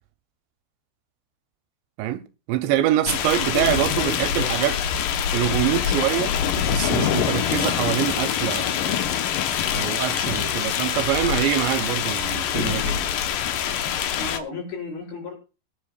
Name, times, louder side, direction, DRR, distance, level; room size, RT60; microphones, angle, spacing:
voice 1, 2.0-4.8 5.3-9.2 9.7-13.1, right 12 dB, 80° right, 2.9 m, -25 dB
sound 1, 3.1-14.4, left 9 dB, 85° left, 1.9 m, -24 dB
voice 2, 3.4-4.8 14.2-15.4, left 4 dB, 70° left, 7.6 m, -34 dB
23.0 x 10.5 x 2.4 m
omnidirectional pair, 5.4 m